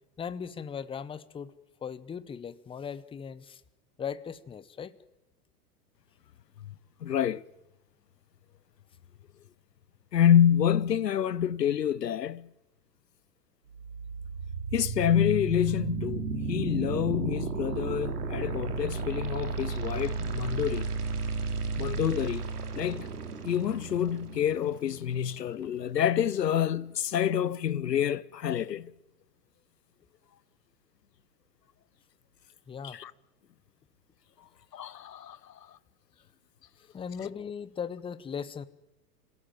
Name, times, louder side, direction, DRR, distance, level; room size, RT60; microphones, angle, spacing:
voice 1, 0.2-1.5 1.8-3.6 4.0-5.0 32.7-33.0 36.9-38.6, left 7 dB, 10° left, 0.8 m, -38 dB
voice 2, 7.0-7.4 10.1-12.5 14.7-20.9 21.8-22.4 22.7-23.1 23.4-28.9 32.8-33.1 34.7-35.5, left 9 dB, 80° left, 0.8 m, -27 dB
sound 1, 13.7-25.7, right 4 dB, 70° right, 3.3 m, -34 dB
27.5 x 16.5 x 9.0 m
figure-of-eight pair, 100°, 48 cm